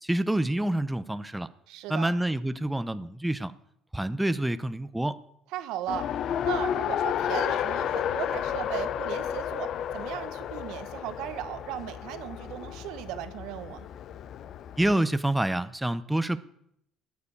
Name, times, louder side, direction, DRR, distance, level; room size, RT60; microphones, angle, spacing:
voice 1, 0.0-1.5 1.9-3.5 3.9-5.2 14.8-16.4, right 1 dB, 5° right, 12 dB, 0.6 m, -27 dB
voice 2, 1.7-2.1 5.5-6.1 6.4-13.9, right 12 dB, 80° right, 12 dB, 1.1 m, -37 dB
Race car auto racing, 5.9-15.0, left 9 dB, 55° left, 0.7 m, -32 dB
11.5 x 9.5 x 8.6 m, 0.75 s
cardioid pair, 110°, 0 cm